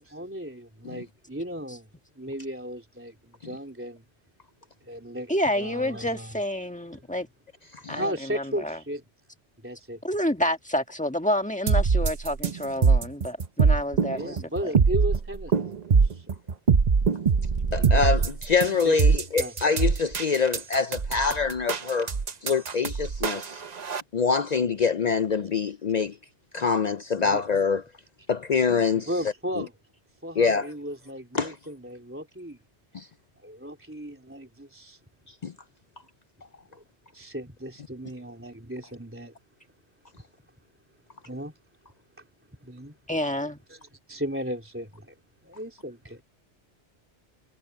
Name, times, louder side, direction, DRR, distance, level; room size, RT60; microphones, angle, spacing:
voice 1, 0.0-1.9 2.2-4.0 4.8-6.4 6.9-7.0 7.9-9.0 9.6-10.0 14.1-15.8 16.0-16.2 17.6-18.2 18.8-19.5 27.2-27.4 28.9-29.7 30.2-32.6 33.4-35.0 37.1-39.3 41.3-41.5 42.6-43.0 43.7-43.8 44.1-45.1 45.4-46.2, equal, 10° right, 3.5 m, -35 dB
voice 2, 5.3-7.3 7.9-8.8 10.0-14.4 43.1-43.6, left 1 dB, 5° left, 1.5 m, -28 dB
sound 1, 11.7-24.0, right 5 dB, 40° right, 0.9 m, -23 dB
voice 3, 17.7-22.1 22.4-23.6 24.1-26.2 26.5-27.8 28.3-29.1 29.6-29.7 30.4-30.7 31.3-31.5 32.9-33.1 35.4-35.5, left 5 dB, 50° left, 0.5 m, -25 dB
omnidirectional pair, 1.2 m